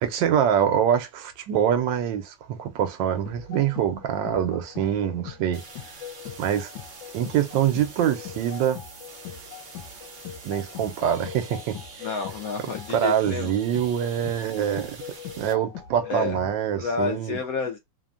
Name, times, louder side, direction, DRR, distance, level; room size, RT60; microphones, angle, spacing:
voice 1, 0.0-5.6 6.4-6.7 7.1-8.8 10.4-12.1 12.9-15.0 15.4-17.4, right 9 dB, 80° right, 1.3 m, -25 dB
sound 1, 3.2-16.6, left 10 dB, 85° left, 1.3 m, -42 dB
sound 2, 5.5-15.5, right 3 dB, 45° right, 0.8 m, -45 dB
voice 2, 12.0-13.5 16.1-16.4 16.8-17.8, left 5 dB, 70° left, 0.8 m, -30 dB
3.2 x 2.1 x 2.4 m
omnidirectional pair, 2.0 m